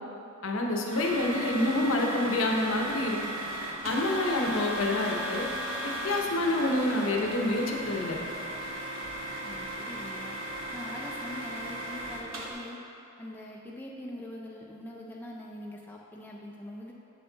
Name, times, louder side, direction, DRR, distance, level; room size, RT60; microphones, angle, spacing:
voice 1, 0.4-3.2 3.8-5.5 5.8-8.2, left 1 dB, 75° left, 1 dB, 0.7 m, -27 dB
sound 1, 0.9-12.5, right 1 dB, 70° right, 1.0 m, -36 dB
voice 2, 9.4-10.4 10.7-12.8 13.2-16.9, left 1 dB, 10° left, -3 dB, 0.4 m, -43 dB
7.5 x 4.5 x 3.9 m, 2.9 s
head